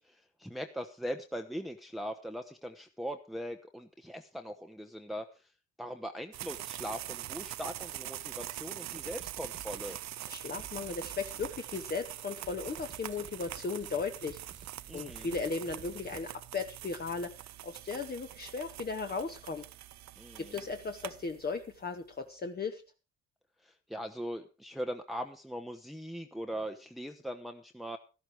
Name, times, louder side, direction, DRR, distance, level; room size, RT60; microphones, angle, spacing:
voice 1, 0.0-5.5 5.8-10.0 14.9-15.3 20.2-20.6 23.6-28.0, equal, ahead, 4 dB, 0.9 m, -40 dB
sound 1, 6.3-21.8, right 14 dB, 65° right, 0.6 m, -44 dB
sound 2, 9.0-16.3, right 7 dB, 40° right, 1.0 m, -53 dB
voice 2, 10.3-19.6 20.4-22.8, left 4 dB, 30° left, 5 dB, 1.1 m, -37 dB
13.0 x 11.5 x 4.6 m, 0.32 s
cardioid pair, 90°, 30 cm